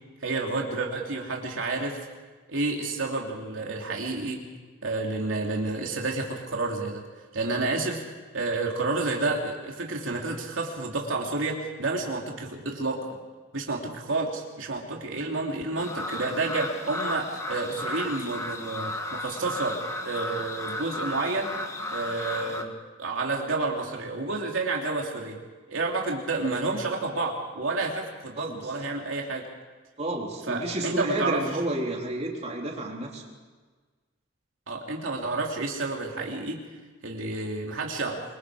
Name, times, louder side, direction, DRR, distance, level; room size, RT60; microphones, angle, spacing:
voice 1, 0.2-2.0 2.5-4.4 4.8-7.0 7.3-8.0 8.3-13.0 13.5-21.5 21.9-22.7 23.0-25.4 25.7-29.5 30.5-31.4 34.7-36.6 37.0-38.2, right 3 dB, 85° right, 0 dB, 2.9 m, -30 dB
sound 1, 15.8-22.6, left 1 dB, 15° left, 1.7 m, -34 dB
voice 2, 30.0-33.2, right 1 dB, 35° right, -1 dB, 3.6 m, -31 dB
26.5 x 23.0 x 4.9 m, 1.4 s
head